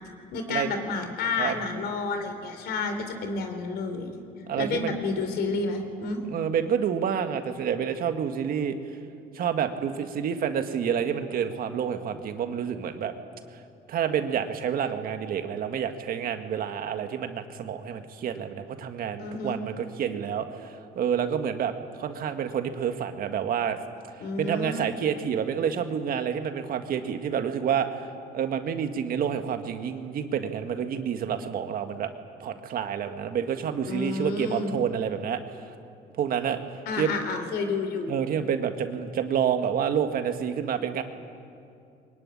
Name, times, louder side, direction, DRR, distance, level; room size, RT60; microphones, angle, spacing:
voice 1, 0.3-4.1 4.6-6.2 19.2-19.6 24.2-24.9 33.9-34.7 36.9-38.1, left 4 dB, 75° left, 7 dB, 3.7 m, -30 dB
voice 2, 4.5-5.0 6.3-8.8 9.3-13.1 13.9-21.7 22.0-23.8 24.2-28.1 28.3-32.1 32.4-35.4 36.2-36.6 37.0-37.1 38.1-41.0, right 8 dB, 60° right, 7 dB, 1.8 m, -28 dB
22.5 x 20.5 x 9.8 m, 2.5 s
cardioid pair, 110°, 17 cm